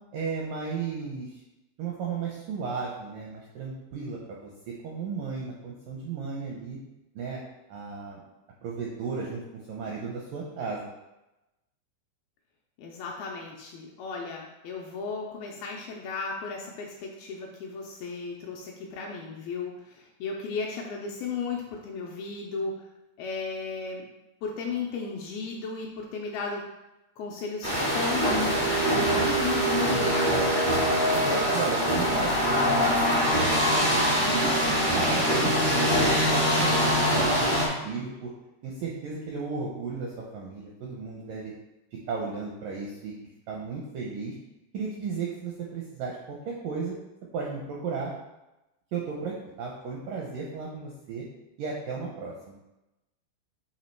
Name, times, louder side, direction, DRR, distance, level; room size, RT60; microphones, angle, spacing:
voice 1, 0.1-1.3 1.8-4.5 4.8-6.8 7.2-7.4 7.7-8.2 8.6-9.4 9.7-10.9 31.1-33.1 33.3-33.4 33.9-38.3 38.6-41.5 42.1-43.1 43.5-44.3 44.7-46.9 47.3-48.1 48.9-51.2 51.6-52.6, right 5 dB, 80° right, -2 dB, 1.9 m, -34 dB
voice 2, 12.8-22.7 23.2-24.1 24.4-26.6 27.2-30.5, left 4 dB, 80° left, -1 dB, 2.3 m, -35 dB
sound 1, 27.6-37.7, equal, 55° right, 0.5 m, -23 dB
8.5 x 2.8 x 4.5 m, 0.97 s
omnidirectional pair, 4.8 m